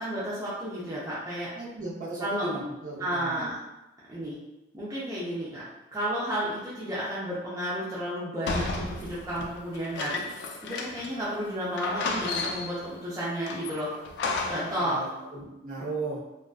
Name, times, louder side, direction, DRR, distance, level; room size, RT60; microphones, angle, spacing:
voice 1, 0.0-1.5 2.2-2.5 3.0-3.6 4.1-4.4 4.7-5.6 5.9-10.2 10.6-13.9 14.5-15.0, equal, 20° right, -9 dB, 0.5 m, -32 dB
voice 2, 1.5-3.5 14.8-16.2, right 2 dB, 45° right, -6 dB, 0.7 m, -36 dB
sound 1, 8.5-11.2 11.5-11.6 11.8-12.9 13.5-14.8, left 3 dB, 65° left, 0.3 m, -33 dB
2.4 x 2.2 x 2.3 m, 0.98 s
head